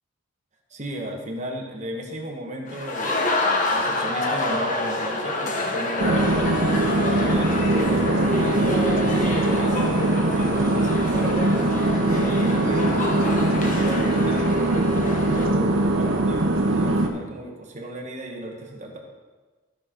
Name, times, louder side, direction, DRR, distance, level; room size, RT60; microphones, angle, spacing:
voice 1, 0.7-3.3 3.7-6.3 7.1-11.4 12.1-14.5 15.3-19.0, equal, 35° right, 1 dB, 1.3 m, -35 dB
sound 1, 2.7-15.5, left 2 dB, 40° left, 1.1 m, -27 dB
sound 2, 6.0-17.1, right 2 dB, 85° right, 0.9 m, -22 dB
13.5 x 6.2 x 3.9 m, 1.3 s
head